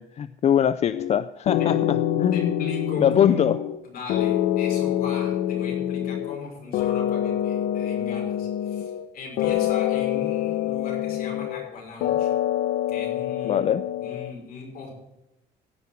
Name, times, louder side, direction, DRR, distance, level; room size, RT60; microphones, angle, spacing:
voice 1, 0.0-2.6 3.0-3.6 13.4-13.8, left 9 dB, 40° left, 14 dB, 0.4 m, -22 dB
sound 1, 0.9-1.2 1.5-3.8 4.1-6.4 6.7-9.1 9.4-11.7 12.0-14.3, left 12 dB, 80° left, 0.8 m, -26 dB
voice 2, 2.3-3.6 3.8-12.3 12.9-13.6 14.0-14.9, left 3 dB, 60° left, -1 dB, 5.5 m, -38 dB
16.0 x 5.8 x 7.4 m, 0.89 s
cardioid pair, 110°, 17 cm